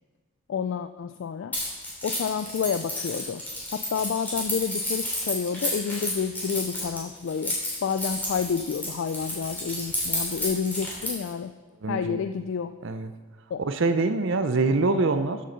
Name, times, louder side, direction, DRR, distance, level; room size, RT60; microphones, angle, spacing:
voice 1, 0.5-1.6 2.0-3.4 3.7-11.5 11.9-12.7 13.5-13.6, left 6 dB, 60° left, 10 dB, 0.3 m, -29 dB
Keys jangling, 1.5-11.3, left 1 dB, 10° left, 2.7 m, -31 dB
voice 2, 11.8-12.2 12.8-13.1 13.6-15.4, right 3 dB, 60° right, 10 dB, 0.6 m, -24 dB
7.6 x 6.5 x 6.8 m, 1.4 s
head